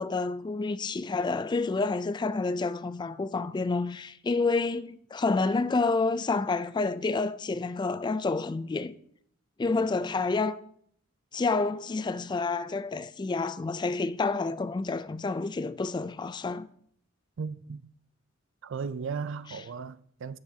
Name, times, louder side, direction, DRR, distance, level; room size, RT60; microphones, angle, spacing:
voice 1, 0.0-8.9 9.6-10.6 11.3-16.7 19.5-19.6, left 3 dB, 20° left, 0.3 m, -29 dB
voice 2, 17.4-17.9 18.6-20.4, right 5 dB, 65° right, 0.4 m, -36 dB
16.0 x 6.9 x 2.7 m
head